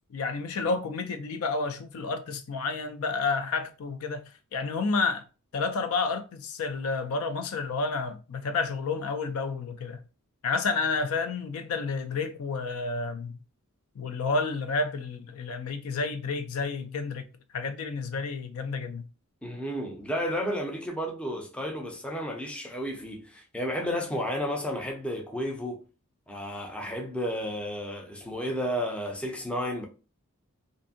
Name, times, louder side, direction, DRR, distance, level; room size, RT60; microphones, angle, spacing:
voice 1, 0.1-5.2 5.5-10.0 10.4-13.4 14.0-17.3 17.5-19.0, left 4 dB, 75° left, 0.4 m, -30 dB
voice 2, 19.4-25.8 26.3-29.9, equal, 5° left, 0.4 m, -32 dB
2.6 x 2.5 x 2.6 m
head